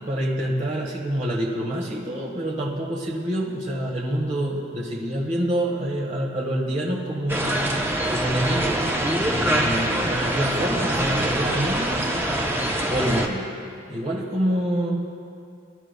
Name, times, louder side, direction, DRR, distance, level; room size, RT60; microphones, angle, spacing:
voice 1, 0.0-8.9 9.3-12.1 12.9-13.5 13.9-15.0, right 1 dB, 30° right, -2 dB, 1.4 m, -27 dB
sound 1, 7.3-13.3, right 1 dB, 10° right, 0.7 m, -24 dB
21.0 x 11.0 x 2.3 m, 2.4 s
head